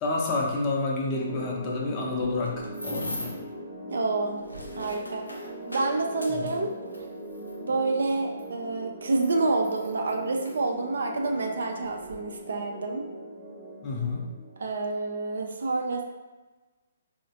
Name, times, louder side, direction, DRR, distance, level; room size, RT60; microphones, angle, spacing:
voice 1, 0.0-3.4 6.3-6.5 13.8-14.2, left 3 dB, 30° left, -2 dB, 0.6 m, -29 dB
sound 1, 1.1-15.5, right 1 dB, 10° right, 0.8 m, -40 dB
sound 2, 2.1-3.5 4.2-7.6 8.4-8.5 9.1-10.6 11.4-11.5 11.8-12.2, equal, 90° left, 0.6 m, -41 dB
voice 2, 3.9-4.4 4.8-6.7 7.6-13.0 14.6-16.0, right 3 dB, 65° right, 3 dB, 0.4 m, -28 dB
3.8 x 2.1 x 2.7 m, 1.2 s
figure-of-eight pair, 130°, 0 cm